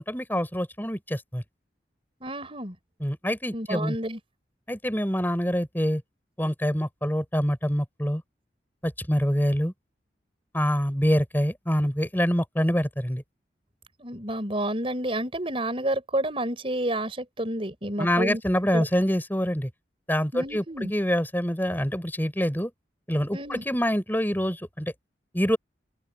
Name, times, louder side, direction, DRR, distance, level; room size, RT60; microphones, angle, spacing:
voice 1, 0.0-1.4 3.0-4.0 4.7-6.0 6.4-8.2 8.8-9.7 10.5-13.2 18.0-19.7 20.1-22.7 23.1-24.9 25.3-25.6, equal, 10° left, 5.6 m, -25 dB
voice 2, 2.2-2.8 3.5-4.2 14.0-18.4 18.7-18.9 20.3-20.9 23.3-23.6, right 1 dB, 30° right, 5.4 m, -30 dB
open air
head